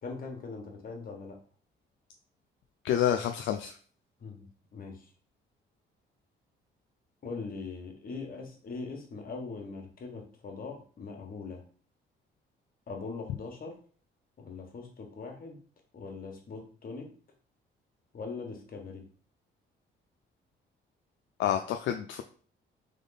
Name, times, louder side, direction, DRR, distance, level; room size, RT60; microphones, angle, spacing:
voice 1, 0.0-1.4 4.2-5.1 7.2-11.6 12.9-13.8 14.4-15.6 15.9-17.1 18.1-19.1, left 4 dB, 45° left, 2 dB, 1.4 m, -41 dB
voice 2, 2.8-3.7 21.4-22.2, left 10 dB, 70° left, 5 dB, 0.4 m, -28 dB
3.6 x 3.6 x 3.9 m, 0.43 s
cardioid pair, 90°, 20 cm